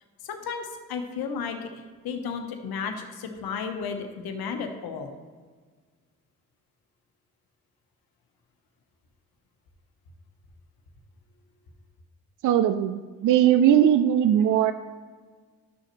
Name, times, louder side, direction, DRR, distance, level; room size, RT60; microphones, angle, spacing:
voice 1, 0.2-1.7 2.0-5.1, left 6 dB, 65° left, 5 dB, 1.1 m, -33 dB
voice 2, 12.4-14.7, right 10 dB, 50° right, 10 dB, 0.5 m, -20 dB
11.5 x 6.4 x 3.1 m, 1.5 s
hypercardioid pair, 45°, 39 cm